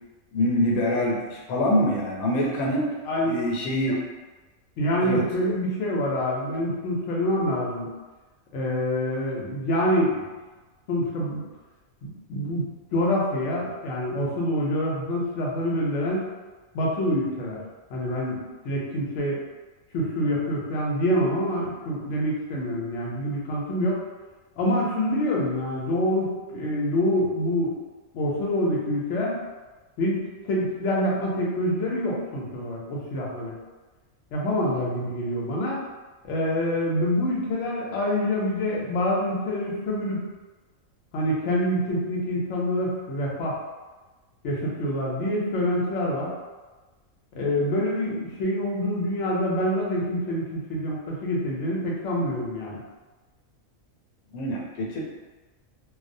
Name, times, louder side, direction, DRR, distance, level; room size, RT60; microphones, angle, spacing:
voice 1, 0.3-2.9 3.2-4.0 5.0-5.2 54.3-55.0, left 1 dB, 85° left, -2 dB, 1.1 m, -25 dB
voice 2, 3.0-3.4 4.8-7.9 8.5-10.2 10.9-11.4 12.0-12.7 12.9-16.3 16.7-17.6 17.9-19.4 19.9-24.0 24.6-27.8 28.1-29.4 30.0-33.5 34.3-35.8 36.2-40.2 41.1-43.5 44.4-46.3 47.3-52.8, left 1 dB, 65° left, -4 dB, 0.9 m, -26 dB
2.4 x 2.0 x 2.6 m, 1.3 s
omnidirectional pair, 1.5 m